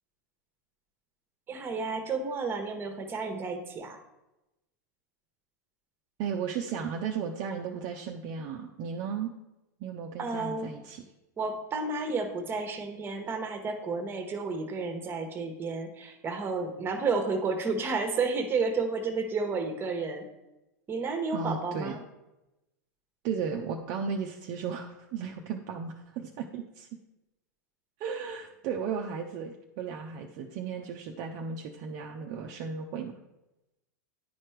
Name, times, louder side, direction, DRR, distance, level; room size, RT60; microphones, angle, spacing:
voice 1, 1.5-4.0 10.2-10.7 11.4-20.2 20.9-22.0, right 4 dB, 25° right, 6 dB, 1.1 m, -31 dB
voice 2, 6.2-9.3 9.8-11.0 21.3-22.0 23.2-26.9 28.0-33.1, right 6 dB, 45° right, 2 dB, 0.6 m, -35 dB
10.0 x 4.4 x 3.2 m, 0.95 s
hypercardioid pair, 100°, 10 cm